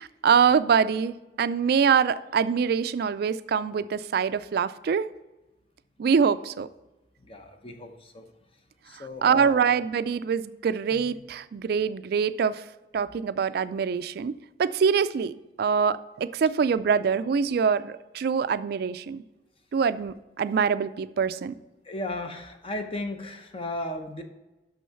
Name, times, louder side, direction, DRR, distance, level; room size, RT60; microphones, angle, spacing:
voice 1, 0.0-5.1 6.0-6.7 9.2-12.6 12.9-19.2 19.7-21.5, right 6 dB, 60° right, 14 dB, 0.3 m, -24 dB
voice 2, 7.2-8.3 8.8-9.6 10.9-11.0 21.8-24.2, left 1 dB, 30° left, 6 dB, 0.8 m, -35 dB
6.3 x 6.2 x 5.7 m, 1.0 s
head